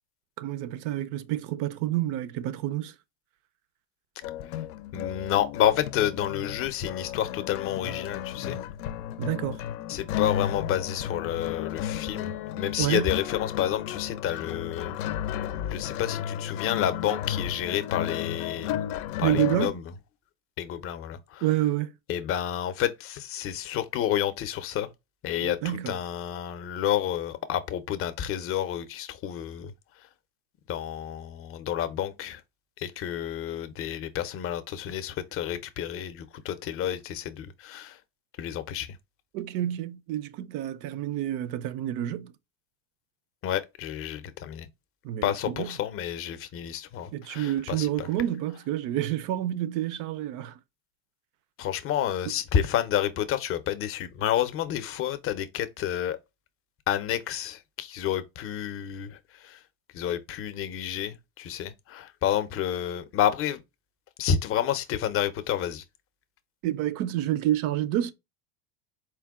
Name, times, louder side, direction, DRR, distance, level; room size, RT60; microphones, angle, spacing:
voice 1, 0.4-2.9 9.2-9.6 12.8-13.2 19.2-19.8 21.4-21.9 25.4-26.0 39.3-42.3 45.0-45.8 47.1-50.6 66.6-68.1, right 13 dB, 50° right, 0.5 m, -28 dB
sound 1, 4.2-19.7, left 11 dB, 85° left, 0.6 m, -33 dB
voice 2, 4.9-8.6 9.9-14.9 15.7-18.7 19.2-19.8 20.6-21.4 22.1-24.9 25.2-29.7 30.7-32.4 32.8-38.0 38.4-39.0 43.4-44.7 45.2-48.1 51.6-56.2 56.9-59.6 59.9-63.6 64.2-65.8, left 10 dB, 35° left, 0.6 m, -30 dB
4.5 x 2.2 x 3.5 m
supercardioid pair, 130°, 41 cm